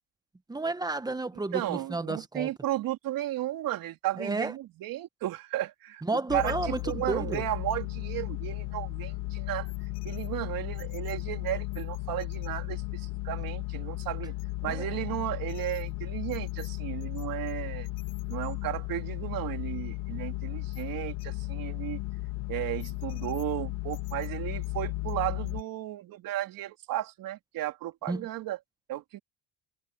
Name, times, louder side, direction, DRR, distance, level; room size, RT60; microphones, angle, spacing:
voice 1, 0.5-2.5 4.2-4.5 6.0-7.4 14.7-14.9 28.1-28.3, right 2 dB, 10° right, 1.4 m, -32 dB
voice 2, 1.5-9.7 10.0-14.3 14.6-17.9 18.3-22.0 22.5-28.6 28.9-29.2, right 14 dB, 60° right, 3.7 m, -34 dB
sound 1, 6.3-25.6, left 20 dB, 85° left, 2.3 m, -35 dB
cardioid pair, 120°, 38 cm